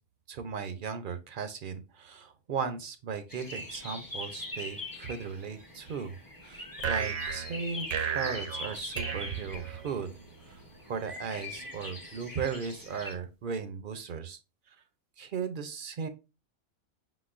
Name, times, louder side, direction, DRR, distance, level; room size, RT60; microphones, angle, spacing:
voice 1, 0.3-6.2 6.4-10.1 10.5-10.6 10.9-14.4 14.7-14.8 15.2-16.1, right 6 dB, 55° right, 9 dB, 0.6 m, -37 dB
sound 1, 3.3-13.2, left 2 dB, 20° left, 0.7 m, -42 dB
sound 2, 6.8-10.2, right 7 dB, 80° right, 1.0 m, -34 dB
5.0 x 3.9 x 2.4 m, 0.28 s
omnidirectional pair, 1.2 m